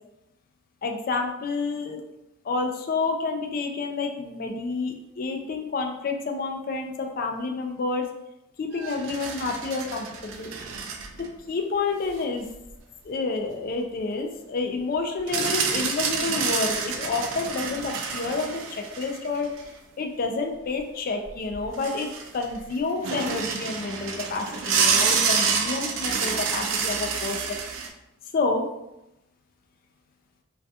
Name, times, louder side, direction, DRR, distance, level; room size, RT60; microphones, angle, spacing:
voice 1, 0.8-2.0 2.4-8.1 8.6-10.5 11.1-12.5 13.0-19.5 20.0-27.6 28.3-28.7, left 3 dB, 45° left, 4 dB, 0.3 m, -29 dB
sound 1, 8.7-11.3 11.9-12.0 15.3-19.7 21.2-21.3 21.5-22.6 23.0-27.9, right 5 dB, 75° right, 0.3 m, -28 dB
2.3 x 2.2 x 2.6 m, 0.89 s
head